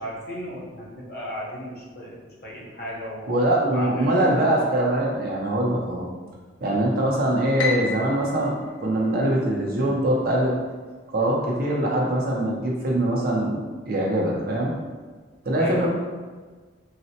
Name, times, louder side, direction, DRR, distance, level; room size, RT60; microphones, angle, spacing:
voice 1, 0.0-2.2 2.4-3.3 3.7-4.1 15.6-15.9, equal, 50° left, -4 dB, 0.7 m, -35 dB
voice 2, 3.3-6.0 6.6-10.5 11.1-13.6 13.9-14.7 15.4-15.9, right 1 dB, 50° right, -3 dB, 0.6 m, -23 dB
Piano, 7.6-9.8, left 4 dB, 85° left, 0.5 m, -32 dB
4.0 x 2.1 x 2.7 m, 1.4 s
head